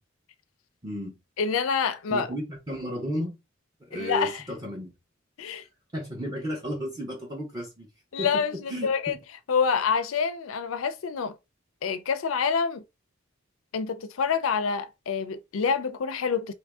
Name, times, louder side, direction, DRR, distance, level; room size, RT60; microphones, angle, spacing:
voice 1, 0.8-1.2 2.1-3.4 3.8-4.9 5.9-7.9 8.2-9.0, equal, 20° right, 0.7 m, -33 dB
voice 2, 1.4-2.3 3.9-4.4 5.4-5.6 8.1-9.1 9.5-11.3 11.8-12.8 13.7-16.5, left 6 dB, 90° left, 0.4 m, -27 dB
2.9 x 2.6 x 3.4 m
head